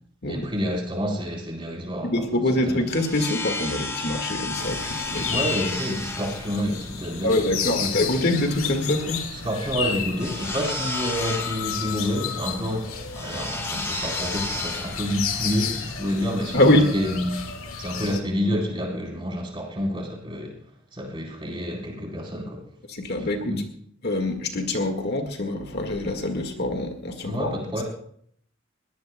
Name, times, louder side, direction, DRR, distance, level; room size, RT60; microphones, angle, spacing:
voice 1, 0.3-2.4 5.3-8.1 9.3-17.3 17.8-20.6 20.9-22.6 23.2-23.6 27.2-27.8, equal, 25° right, -1 dB, 4.2 m, -29 dB
voice 2, 2.1-5.4 7.2-9.3 16.5-16.9 22.9-23.5 24.0-27.5 27.8-27.9, left 1 dB, 50° left, 4 dB, 1.9 m, -24 dB
sound 1, 2.5-17.1, left 2 dB, 10° left, 0.9 m, -34 dB
sound 2, 4.6-18.2, left 6 dB, 90° left, 2.1 m, -32 dB
21.0 x 17.5 x 2.3 m, 0.65 s
head